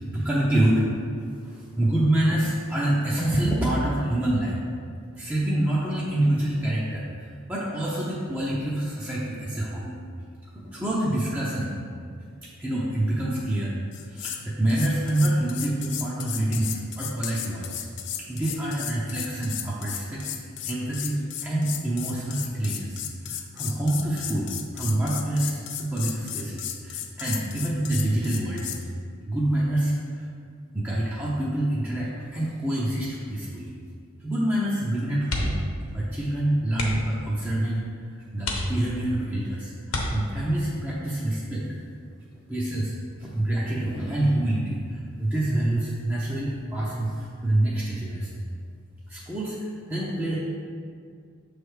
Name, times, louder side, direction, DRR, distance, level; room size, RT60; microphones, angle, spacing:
voice 1, 0.1-0.9 1.4-4.6 5.2-9.9 10.6-11.7 12.4-13.7 14.1-17.9 18.2-20.2 20.6-23.0 23.3-28.7 29.3-30.2 30.7-33.7 34.2-35.6 35.9-37.9 38.3-41.6 42.5-42.9 43.2-48.3 49.1-50.4, right 1 dB, 10° right, -7 dB, 0.6 m, -26 dB
sound 1, 13.9-14.4 14.7-28.8, left 10 dB, 55° left, 0.4 m, -35 dB
sound 2, 35.2-35.8 36.1-36.2 36.7-37.2 37.8-37.9 38.4-39.2 39.9-40.6 42.2-42.5 42.9-43.0, left 2 dB, 80° left, 0.9 m, -31 dB
7.0 x 3.3 x 4.7 m, 2.2 s
head